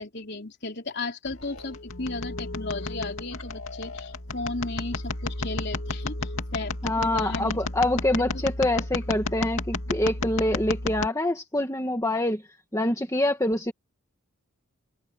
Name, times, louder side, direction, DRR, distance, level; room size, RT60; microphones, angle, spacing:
voice 1, 0.0-7.6 8.2-8.3 8.6-8.9, left 3 dB, 50° left, 3.7 m, -35 dB
sound 1, 1.3-11.1, left 2 dB, 65° left, 2.5 m, -32 dB
voice 2, 6.8-12.4 12.7-13.7, left 1 dB, 15° left, 1.6 m, -25 dB
head